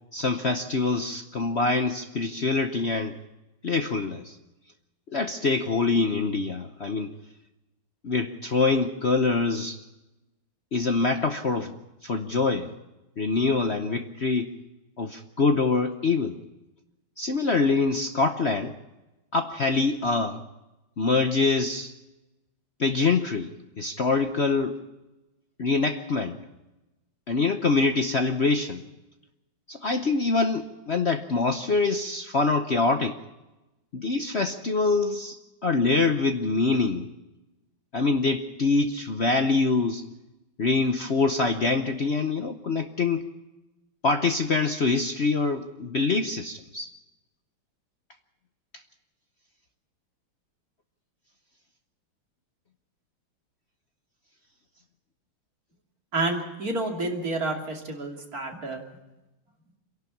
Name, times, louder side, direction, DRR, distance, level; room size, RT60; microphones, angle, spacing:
voice 1, 0.1-3.2 3.6-4.4 5.1-7.1 8.0-9.8 10.7-11.7 12.0-12.7 13.2-14.5 15.0-16.4 17.2-18.8 19.3-20.4 21.0-21.9 22.8-24.8 25.6-26.4 27.3-28.8 29.7-33.2 33.9-35.4 35.6-37.1 37.9-40.0 40.6-43.3 44.0-46.9, left 3 dB, 55° left, 6 dB, 0.7 m, -25 dB
voice 2, 56.1-58.8, right 2 dB, 40° right, 1 dB, 3.2 m, -29 dB
26.5 x 11.5 x 8.5 m, 1.0 s
omnidirectional pair, 2.4 m